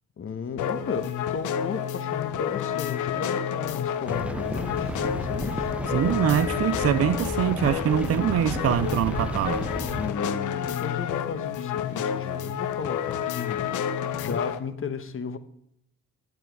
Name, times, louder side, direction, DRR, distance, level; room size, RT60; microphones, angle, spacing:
voice 1, 0.2-5.7 9.9-15.4, left 5 dB, 45° left, 1.2 m, -34 dB
sound 1, 0.6-14.6, left 9 dB, 80° left, 0.9 m, -30 dB
sound 2, 4.1-10.1, right 1 dB, 5° right, 0.6 m, -33 dB
voice 2, 5.9-9.6, right 10 dB, 50° right, 0.5 m, -24 dB
12.5 x 8.8 x 4.7 m
cardioid pair, 90°, 30 cm